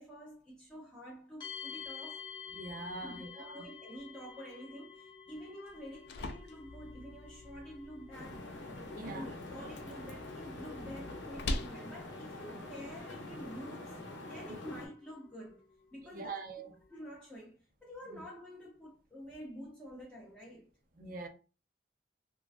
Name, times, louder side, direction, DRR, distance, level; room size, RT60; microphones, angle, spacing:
voice 1, 0.0-2.3 3.0-8.6 9.0-15.6 15.9-16.3 16.9-20.7, equal, 5° left, 0.5 m, -48 dB
sound 1, 1.4-17.1, left 7 dB, 25° left, 0.9 m, -52 dB
voice 2, 2.5-3.6 9.0-9.3 16.0-16.8 18.1-18.2 21.0-21.3, right 3 dB, 50° right, 0.5 m, -43 dB
sound 2, 5.7-13.6, left 2 dB, 60° left, 0.3 m, -44 dB
sound 3, 8.1-14.9, left 2 dB, 80° left, 0.8 m, -45 dB
3.1 x 2.2 x 2.4 m
head